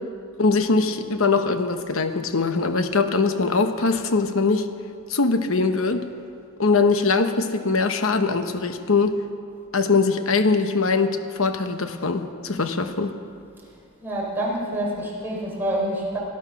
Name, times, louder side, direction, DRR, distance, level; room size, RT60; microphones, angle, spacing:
voice 1, 0.4-4.7 5.1-6.1 6.6-9.2 9.7-13.1, left 4 dB, 65° left, 8 dB, 1.0 m, -22 dB
voice 2, 14.0-16.2, right 1 dB, 10° right, -5 dB, 4.0 m, -27 dB
18.5 x 11.0 x 5.8 m, 2.4 s
head